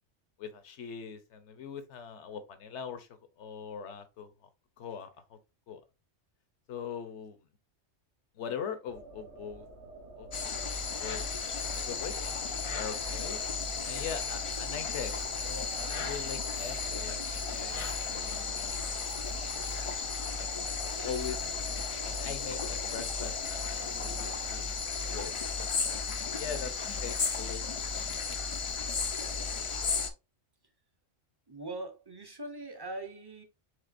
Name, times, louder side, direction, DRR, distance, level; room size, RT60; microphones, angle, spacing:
voice 1, 0.4-3.1 3.4-4.3 4.8-5.4 5.7-5.8 6.7-7.4 8.3-9.7 10.2-10.6 11.0-11.2 11.6-12.3 12.7-13.4 13.8-17.8 18.0-18.9 20.4-20.5 21.0-21.5 22.0-24.7 25.1-25.3 26.0-26.7 27.0-27.8, left 7 dB, 70° left, 1.1 m, -41 dB
sound 1, 8.9-24.6, right 2 dB, 65° right, 1.4 m, -49 dB
sound 2, 10.3-30.1, left 5 dB, 45° left, 0.4 m, -34 dB
voice 2, 31.5-33.4, right 2 dB, 25° right, 0.6 m, -41 dB
5.0 x 3.7 x 2.5 m
omnidirectional pair, 1.3 m